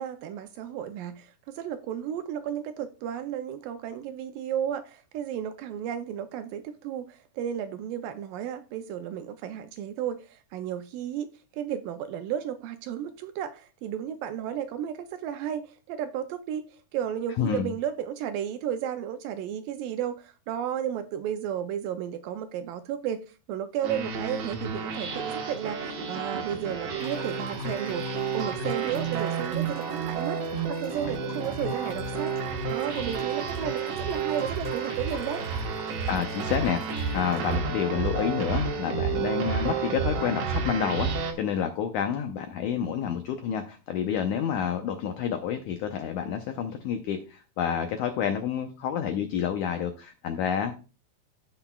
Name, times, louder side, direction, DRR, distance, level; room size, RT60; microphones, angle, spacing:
voice 1, 0.0-30.4 30.7-32.3 32.7-35.4, right 9 dB, 80° right, 2.0 m, -33 dB
voice 2, 17.4-17.7 36.1-50.7, left 8 dB, 90° left, 1.7 m, -29 dB
sound 1, 23.8-41.3, right 5 dB, 60° right, 1.8 m, -31 dB
sound 2, 27.0-37.5, left 4 dB, 65° left, 3.9 m, -49 dB
sound 3, 28.1-39.8, equal, 5° left, 2.8 m, -51 dB
15.5 x 6.0 x 2.2 m
omnidirectional pair, 4.3 m